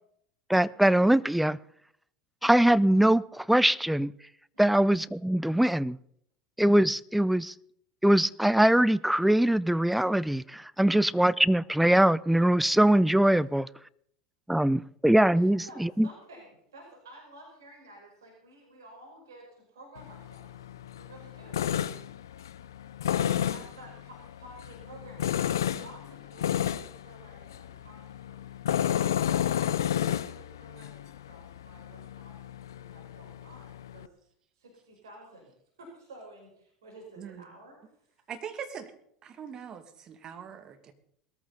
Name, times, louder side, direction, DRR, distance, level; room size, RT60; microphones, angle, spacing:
voice 1, 0.5-1.6 2.4-4.1 4.6-6.0 6.6-7.5 8.0-13.7 14.5-16.1, right 1 dB, 5° right, 0.6 m, -22 dB
voice 2, 15.3-21.6 23.4-25.4 25.7-28.5 29.3-34.1 34.6-35.5 35.8-38.3, right 1 dB, 70° right, 5.2 m, -52 dB
Tools, 20.0-34.1, left 10 dB, 70° left, 0.6 m, -32 dB
voice 3, 38.3-38.9 39.2-40.9, right 7 dB, 35° right, 2.4 m, -41 dB
20.5 x 14.0 x 4.2 m
figure-of-eight pair, 75°, 2 cm